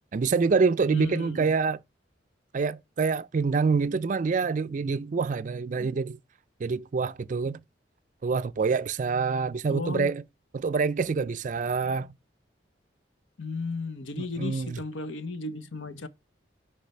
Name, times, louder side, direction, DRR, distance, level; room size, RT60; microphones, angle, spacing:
voice 1, 0.1-1.8 2.5-6.2 6.6-7.6 8.2-10.2 10.5-12.1 14.2-14.8, right 4 dB, 40° right, 0.3 m, -26 dB
voice 2, 0.9-1.6 9.7-10.1 13.4-16.1, left 3 dB, 85° left, 0.8 m, -34 dB
8.4 x 3.3 x 5.7 m
head